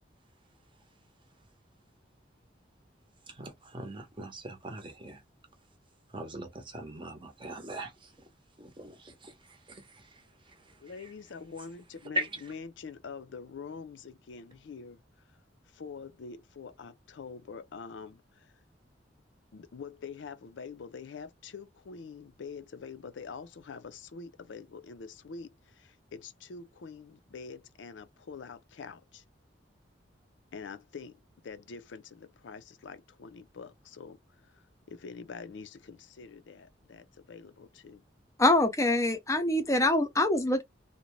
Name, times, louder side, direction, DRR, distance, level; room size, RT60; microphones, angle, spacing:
voice 1, 3.3-5.2 6.1-8.1 8.6-10.1 12.1-12.3, equal, 25° right, 0.7 m, -40 dB
voice 2, 10.8-15.0 15.7-18.5 19.5-29.2 30.5-38.0, left 5 dB, 75° left, 0.5 m, -45 dB
voice 3, 38.4-40.6, left 1 dB, 15° left, 0.5 m, -25 dB
2.5 x 2.1 x 3.0 m
head